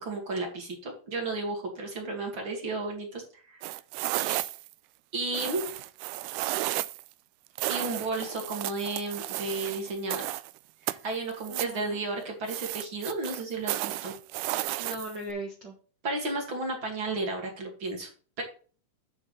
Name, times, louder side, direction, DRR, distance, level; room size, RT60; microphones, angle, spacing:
voice 1, 0.0-3.2 3.5-3.6 5.1-5.6 7.7-10.3 10.9-14.1 16.0-18.1 18.4-18.5, right 2 dB, 35° right, 1 dB, 2.4 m, -33 dB
sound 1, 3.6-4.7 5.3-7.1 7.6-10.5 10.9-11.8 12.5-15.3, right 17 dB, 85° right, 2.5 m, -33 dB
voice 2, 4.2-4.5 11.5-12.0 14.8-15.7, right 1 dB, 65° right, 0 dB, 1.0 m, -39 dB
9.7 x 7.2 x 3.3 m, 0.39 s
omnidirectional pair, 4.6 m